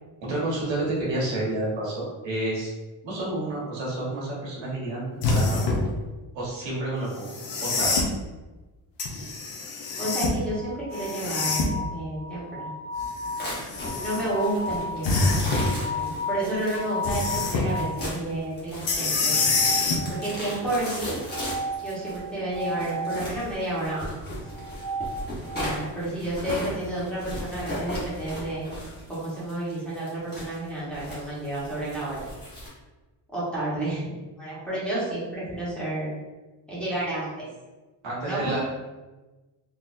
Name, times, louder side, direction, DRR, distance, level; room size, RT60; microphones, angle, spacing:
voice 1, 0.2-2.7 3.0-5.6 6.3-7.3 7.6-8.0 9.2-9.3 38.0-38.6, right 2 dB, 85° right, -5 dB, 1.4 m, -29 dB
sound 1, 5.2-5.9 7.2-8.1 9.0-10.4 10.9-11.9 13.0-14.2 15.0-15.7 17.0-17.7 18.9-20.0 21.7-21.8, left 3 dB, 75° left, 0.8 m, -25 dB
voice 2, 9.9-12.7 14.0-15.6 15.9-19.5 20.1-21.2 21.8-24.1 25.5-28.7 29.1-32.2 33.3-34.0 34.4-36.1 36.7-37.4 38.2-38.6, right 1 dB, ahead, -10 dB, 1.3 m, -31 dB
sound 2, 9.9-18.0 19.2-20.5 21.3-23.2 24.4-25.8, left 1 dB, 30° right, 0.8 m, -34 dB
sound 3, 13.4-32.7, left 1 dB, 20° left, 1.2 m, -37 dB
3.9 x 2.8 x 2.6 m, 1.2 s
wide cardioid pair, 160°, 44 cm